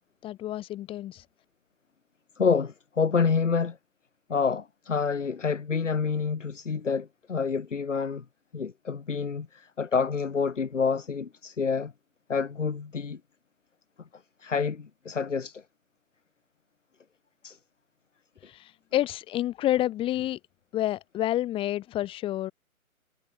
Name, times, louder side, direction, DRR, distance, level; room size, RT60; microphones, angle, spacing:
voice 1, 0.2-1.2 18.5-20.4 20.7-22.5, left 13 dB, 10° left, 3.0 m, -29 dB
voice 2, 2.4-3.8 4.3-8.2 8.5-11.9 12.3-13.2 14.4-15.6 17.4-17.6, left 5 dB, 60° left, 5.8 m, -28 dB
figure-of-eight pair, 140°, 42 cm